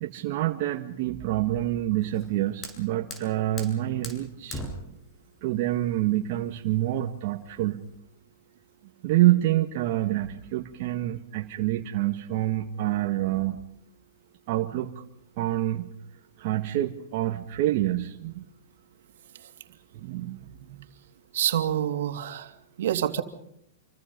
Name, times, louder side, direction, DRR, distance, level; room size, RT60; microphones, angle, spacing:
voice 1, 0.0-4.6 5.4-7.8 9.0-13.6 14.5-15.0 15.4-15.9 16.4-18.4 19.9-20.8, right 14 dB, 50° right, 2 dB, 1.9 m, -27 dB
Fire, 2.0-8.0, left 1 dB, 25° left, 7.9 m, -43 dB
voice 2, 21.3-22.5 22.8-23.2, right 10 dB, 70° right, 7 dB, 2.9 m, -26 dB
28.0 x 25.0 x 5.5 m, 0.74 s
hypercardioid pair, 135°, 0 cm